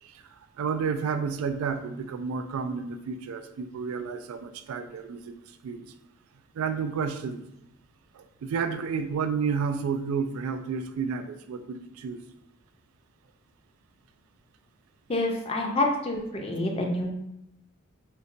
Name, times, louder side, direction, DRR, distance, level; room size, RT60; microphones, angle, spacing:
voice 1, 0.0-5.9 6.5-7.4 8.1-12.2, right 5 dB, 85° right, 10 dB, 0.3 m, -31 dB
voice 2, 15.1-17.1, left 2 dB, 30° left, 1 dB, 0.4 m, -27 dB
3.9 x 2.1 x 2.5 m, 0.84 s
head